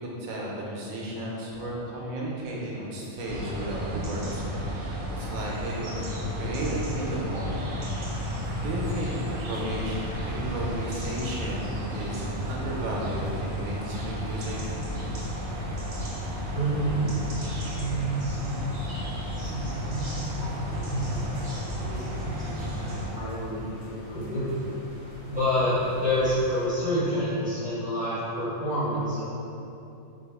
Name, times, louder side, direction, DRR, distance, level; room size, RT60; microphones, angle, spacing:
voice 1, 0.0-6.1 6.4-7.7 8.6-10.0 10.2-14.6, right 1 dB, 85° right, -3 dB, 1.1 m, -33 dB
sound 1, 3.3-23.1, equal, 60° right, 0.4 m, -33 dB
sound 2, 8.0-26.6, equal, 30° left, 0.5 m, -47 dB
voice 2, 16.5-17.2 17.5-18.6 19.3-24.5 25.3-29.2, equal, 5° right, -13 dB, 1.2 m, -29 dB
3.0 x 2.3 x 3.5 m, 2.9 s
omnidirectional pair, 1.4 m